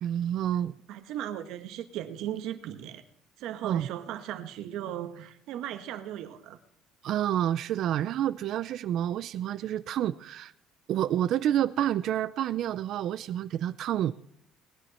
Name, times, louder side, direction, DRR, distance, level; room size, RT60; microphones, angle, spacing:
voice 1, 0.0-0.7 3.6-3.9 7.0-10.5 10.9-14.1, right 11 dB, 50° right, 15 dB, 0.4 m, -28 dB
voice 2, 0.9-3.0 3.4-6.6, right 11 dB, 65° right, 8 dB, 1.6 m, -37 dB
19.5 x 10.0 x 4.3 m, 0.72 s
cardioid pair, 160°, 0 cm